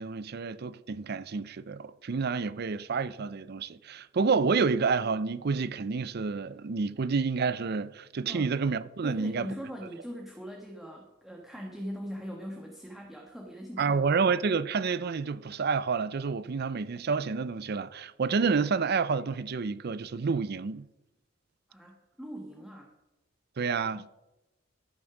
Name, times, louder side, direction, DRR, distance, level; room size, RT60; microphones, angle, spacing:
voice 1, 0.0-9.5 13.8-20.9 23.6-24.1, right 5 dB, 55° right, 0.5 m, -29 dB
voice 2, 9.0-14.0 21.7-22.9 23.9-24.0, equal, ahead, 1.3 m, -41 dB
14.0 x 6.4 x 6.0 m
head